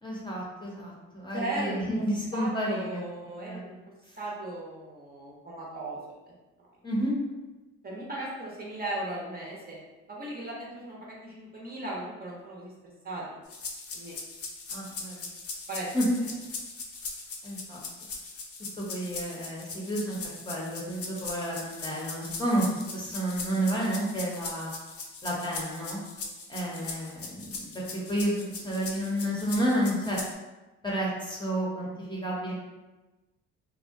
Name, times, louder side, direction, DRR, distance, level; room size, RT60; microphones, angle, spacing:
voice 1, 0.0-3.0 3.4-3.7 6.8-7.1 14.7-15.3 15.9-16.2 17.4-17.8 18.8-20.2 20.5-24.7 25.2-26.0 26.5-30.2 30.8-32.5, right 1 dB, 15° left, -5 dB, 0.7 m, -30 dB
voice 2, 1.3-2.0 2.3-3.7 4.2-6.0 6.6-6.7 7.8-9.8 10.1-13.2 13.9-14.1 15.7-15.9 26.7-26.9, right 2 dB, 30° right, -4 dB, 0.6 m, -37 dB
sound 1, 13.5-30.3, left 4 dB, 50° left, 0.6 m, -40 dB
2.6 x 2.1 x 2.5 m, 1.1 s
cardioid pair, 90°, 30 cm